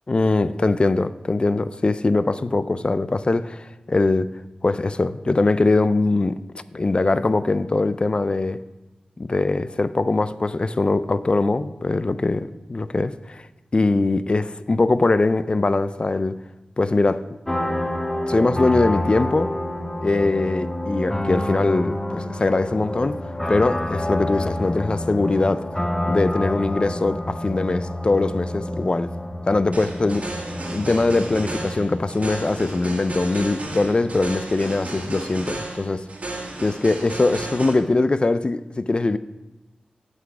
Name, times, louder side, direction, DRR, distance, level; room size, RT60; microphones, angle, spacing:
voice 1, 0.1-4.3 4.6-6.4 6.7-8.6 9.2-13.5 13.7-16.4 16.8-17.4 18.3-19.5 20.0-23.2 23.5-25.7 26.1-29.1 29.5-30.2 30.7-36.0 36.6-39.2, left 3 dB, 40° left, 0.4 m, -21 dB
sound 1, 17.5-34.0, left 1 dB, 15° left, 0.8 m, -28 dB
sound 2, 29.7-37.7, right 2 dB, 65° right, 1.8 m, -33 dB
8.0 x 5.9 x 6.0 m
wide cardioid pair, 65°, 3 cm